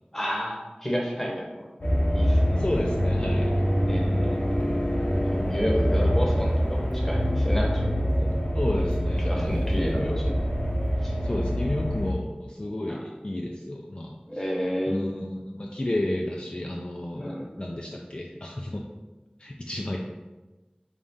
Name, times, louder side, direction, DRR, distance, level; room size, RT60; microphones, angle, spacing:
voice 1, 0.1-1.7 2.1-2.6 3.9-4.5 4.8-8.3 9.2-10.4 11.0-11.2 12.9-13.0 14.3-15.1 17.2-17.4, equal, 10° left, -2 dB, 0.9 m, -31 dB
sound 1, 1.8-12.1, equal, 60° left, 0.8 m, -25 dB
voice 2, 2.6-3.5 8.5-9.6 9.9-10.2 11.2-14.4 14.9-18.8 19.4-20.0, left 1 dB, 40° left, -1 dB, 0.3 m, -32 dB
3.6 x 2.7 x 3.5 m, 1.2 s
wide cardioid pair, 40°, 3 cm